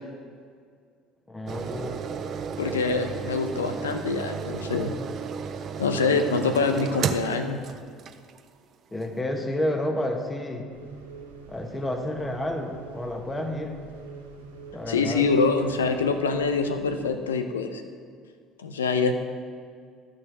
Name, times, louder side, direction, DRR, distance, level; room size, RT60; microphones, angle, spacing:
voice 1, 1.3-2.1 8.9-10.7 11.5-13.8 14.7-15.2, left 1 dB, 15° left, 4 dB, 1.3 m, -30 dB
sound 1, 1.5-8.5 9.0-9.1, right 6 dB, 45° right, 0.5 m, -33 dB
voice 2, 2.6-4.9 5.8-7.6 14.9-17.8 18.6-19.2, left 4 dB, 85° left, 7 dB, 0.6 m, -25 dB
sound 2, 10.7-17.0, right 4 dB, 85° right, 1.2 m, -44 dB
12.0 x 6.3 x 4.8 m, 2.1 s
figure-of-eight pair, 60°, 0 cm